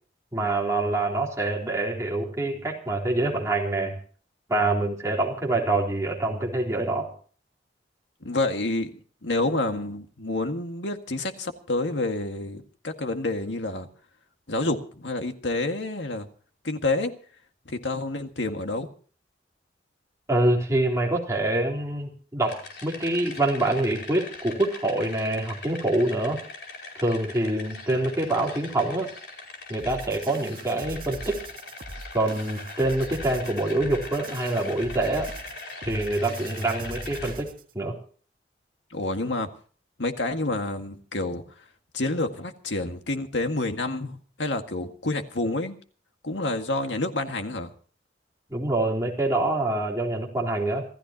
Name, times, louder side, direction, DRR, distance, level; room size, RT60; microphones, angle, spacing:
voice 1, 0.3-4.0 4.5-7.1 20.3-26.4 27.0-29.1 29.7-31.4 32.1-35.3 35.8-37.5 37.7-38.0 48.5-50.9, right 2 dB, 15° right, -2 dB, 3.9 m, -25 dB
voice 2, 8.2-8.9 9.2-13.9 14.5-16.3 16.6-17.1 17.7-18.9 38.9-39.5 40.0-41.4 41.9-45.8 46.2-47.7, left 2 dB, 90° left, 6 dB, 1.9 m, -28 dB
sound 1, 22.4-37.3, left 3 dB, 70° left, 5.0 m, -41 dB
sound 2, 29.8-37.7, right 2 dB, 50° right, 1.8 m, -41 dB
27.0 x 14.5 x 2.9 m, 0.43 s
head